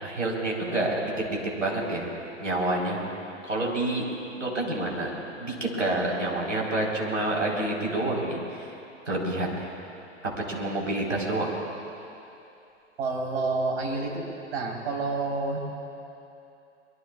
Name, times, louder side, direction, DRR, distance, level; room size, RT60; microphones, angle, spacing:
voice 1, 0.0-2.1 2.4-3.0 3.4-4.0 4.3-8.7 9.1-9.7 10.5-11.5, right 2 dB, 85° right, -2 dB, 4.5 m, -28 dB
voice 2, 13.0-14.2 14.5-15.6, right 3 dB, 55° right, -2 dB, 4.5 m, -28 dB
24.0 x 24.0 x 2.5 m, 2.8 s
figure-of-eight pair, 115°, 37 cm